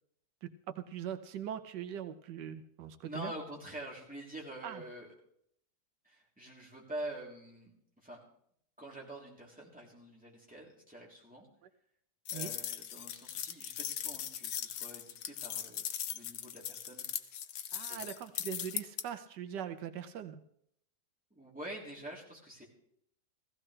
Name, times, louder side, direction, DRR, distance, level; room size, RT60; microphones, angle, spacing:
voice 1, 0.4-3.3 4.6-4.8 12.3-12.5 17.7-20.4, right 9 dB, 85° right, 8 dB, 1.4 m, -41 dB
voice 2, 3.0-5.1 6.0-7.7 8.0-8.2 8.8-11.5 12.3-17.0 17.9-18.0 21.3-22.6, right 1 dB, 5° right, -4 dB, 3.2 m, -46 dB
sound 1, 12.3-19.0, left 10 dB, 85° left, 1.3 m, -39 dB
16.0 x 15.5 x 3.3 m, 0.70 s
omnidirectional pair, 1.8 m